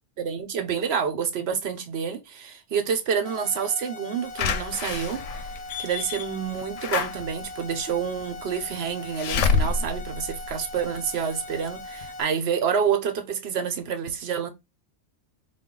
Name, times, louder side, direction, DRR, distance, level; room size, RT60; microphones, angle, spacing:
voice 1, 0.2-5.2 5.8-14.5, right 7 dB, 60° right, 1.0 m, -28 dB
sound 1, 3.2-12.3, left 2 dB, 50° left, 0.4 m, -40 dB
Slam / Alarm, 4.4-11.2 11.7-11.8 12.0-12.1, left 5 dB, 80° left, 1.0 m, -29 dB
4.1 x 2.5 x 3.7 m
omnidirectional pair, 1.3 m